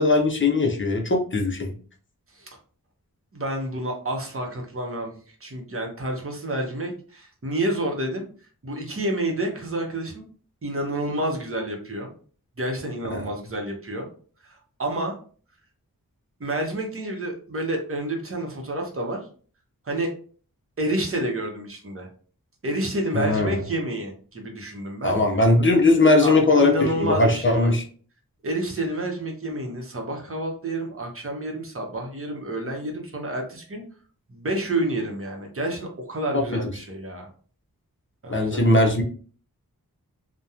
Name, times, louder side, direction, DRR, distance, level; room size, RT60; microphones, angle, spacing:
voice 1, 0.0-1.7 13.1-13.3 23.1-23.6 25.0-27.8 36.3-36.6 38.3-39.0, left 2 dB, 35° left, 1 dB, 0.6 m, -19 dB
voice 2, 3.3-5.2 5.4-8.2 8.6-10.2 10.6-12.1 12.6-14.1 14.4-15.1 16.4-19.2 19.8-20.1 20.8-22.1 22.6-25.2 26.2-27.7 28.4-33.8 34.3-37.3 38.2-38.7, right 1 dB, 40° right, 1 dB, 0.8 m, -29 dB
2.8 x 2.2 x 2.4 m, 0.42 s
wide cardioid pair, 50°, 35 cm